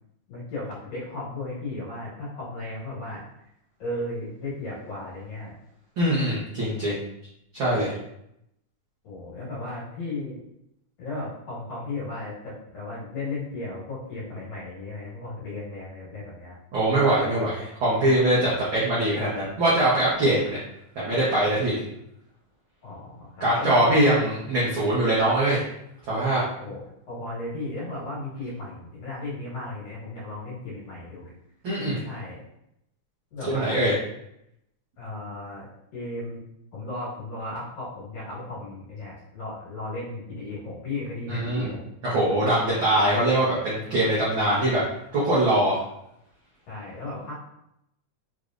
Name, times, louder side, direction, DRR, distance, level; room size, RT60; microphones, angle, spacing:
voice 1, 0.3-3.2 3.8-5.5 9.0-10.4 11.0-16.6 22.8-24.0 26.6-31.3 32.0-32.4 33.3-33.8 35.0-36.4 36.7-41.8 46.7-47.3, left 2 dB, 60° left, -6 dB, 2.4 m, -35 dB
voice 2, 6.0-7.0 7.5-7.9 16.7-20.6 20.9-21.7 23.4-25.6 26.1-26.4 31.6-32.0 33.5-33.9 41.3-41.7 42.0-44.8 45.1-45.8, right 1 dB, 70° right, -8 dB, 1.1 m, -22 dB
5.0 x 3.2 x 2.5 m, 0.80 s
omnidirectional pair, 3.6 m